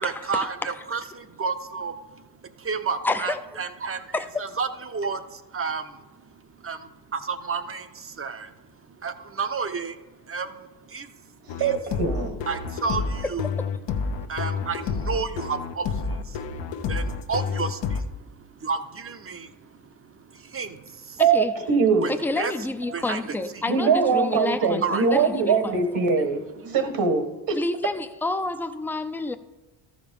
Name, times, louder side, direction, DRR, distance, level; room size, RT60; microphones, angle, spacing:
voice 1, 0.0-11.7 12.5-13.5 14.1-21.2 22.0-23.9 24.8-25.8 26.2-26.9, right 5 dB, 30° right, 0.8 m, -32 dB
voice 2, 3.0-3.4 4.1-4.3 13.6-13.7 21.2-21.5 22.1-24.8 25.1-25.8 27.5-29.4, left 2 dB, 5° left, 0.5 m, -29 dB
sound 1, 11.5-18.0, left 5 dB, 65° left, 0.9 m, -29 dB
voice 3, 11.6-12.4 21.2-22.1 23.7-26.4 26.7-27.6, right 5 dB, 65° right, 1.5 m, -22 dB
13.0 x 5.1 x 5.4 m
supercardioid pair, 75°, 47 cm